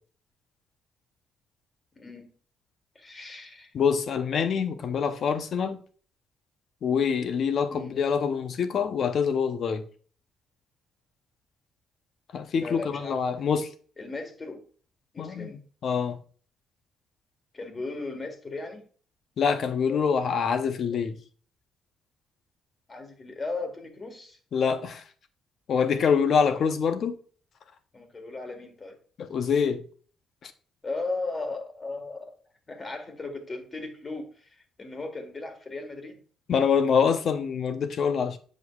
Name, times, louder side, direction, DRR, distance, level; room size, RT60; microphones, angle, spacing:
voice 1, 1.9-2.3 2.9-3.7 7.7-8.0 12.5-13.5 14.0-14.6 15.1-15.6 17.5-18.8 22.9-24.4 26.5-26.7 27.9-29.0 30.8-32.3 32.7-36.2, left 3 dB, 30° left, 1.6 m, -37 dB
voice 2, 3.7-5.8 6.8-9.8 12.3-13.7 15.2-15.5 15.8-16.2 19.4-21.2 24.5-25.0 25.7-27.2 29.2-29.8 30.4-30.5 36.5-38.4, left 6 dB, 60° left, 0.8 m, -25 dB
7.9 x 5.2 x 2.4 m
cardioid pair, 90°, 0 cm